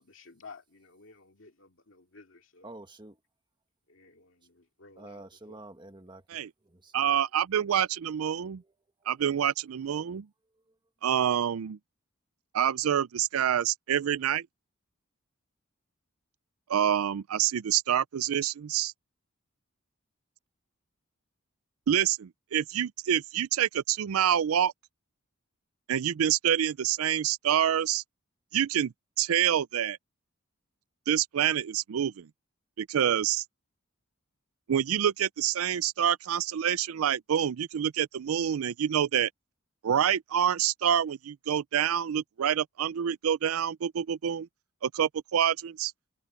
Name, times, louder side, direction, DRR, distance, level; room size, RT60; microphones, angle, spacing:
voice 1, 0.0-2.7 3.9-5.6, left 4 dB, 65° left, 2.4 m, -53 dB
voice 2, 2.6-3.2 5.0-7.0 8.5-8.7 9.0-9.2, right 2 dB, 20° right, 1.6 m, -49 dB
voice 3, 6.9-8.6 9.1-10.3 11.0-11.8 12.5-14.5 16.7-18.9 21.9-24.7 25.9-28.0 28.5-28.9 29.2-30.0 31.1-32.3 32.8-33.4 34.7-39.3 39.8-44.5 44.8-45.9, right 9 dB, 85° right, 0.4 m, -27 dB
head